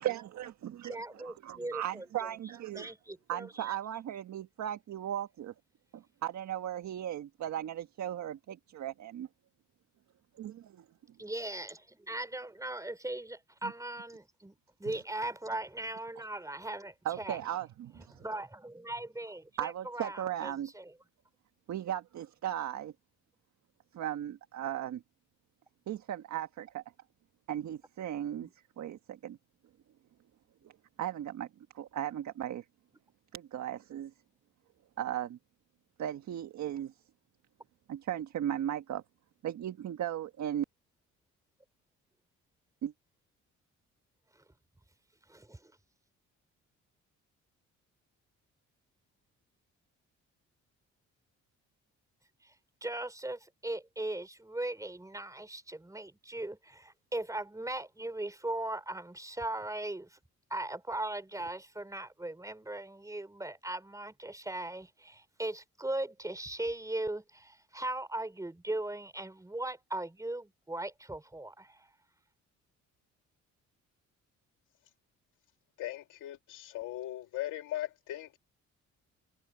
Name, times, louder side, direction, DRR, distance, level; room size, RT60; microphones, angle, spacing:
voice 1, 0.0-2.9 3.3-5.5 5.9-9.3 10.4-10.8 13.6-13.7 14.8-15.0 16.2-16.3 17.0-18.2 19.6-20.7 21.7-22.9 23.9-25.0 25.9-26.8 27.5-28.5 28.8-29.4 30.6-30.7 31.0-31.5 31.7-32.6 33.3-34.1 35.0-35.4 36.0-36.9 37.9-39.0 39.4-40.6 42.8-42.9, right 11 dB, 65° right, 1.5 m, -37 dB
voice 2, 0.9-2.3 2.7-3.7 11.2-17.4 18.1-20.9 28.4-28.5 45.3-45.7 52.4-52.5 52.8-60.2 60.5-71.9, right 2 dB, 10° right, 4.1 m, -39 dB
voice 3, 75.8-78.4, left 14 dB, 90° left, 2.2 m, -39 dB
cardioid pair, 90°, 30 cm